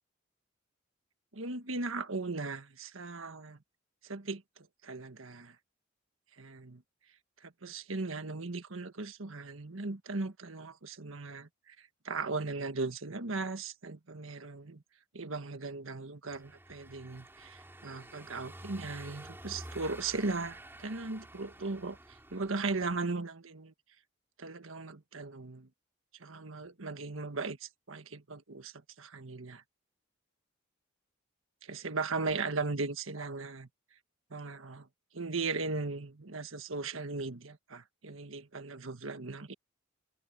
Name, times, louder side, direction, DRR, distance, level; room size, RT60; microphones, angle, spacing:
voice 1, 1.3-3.6 4.0-5.5 6.4-6.8 7.4-14.8 15.1-23.7 24.4-25.7 26.2-29.6 31.6-33.7 34.3-34.9 35.1-39.5, right 3 dB, 75° right, 1.5 m, -38 dB
Car passing by / Engine, 16.3-23.0, right 1 dB, 10° right, 3.1 m, -50 dB
head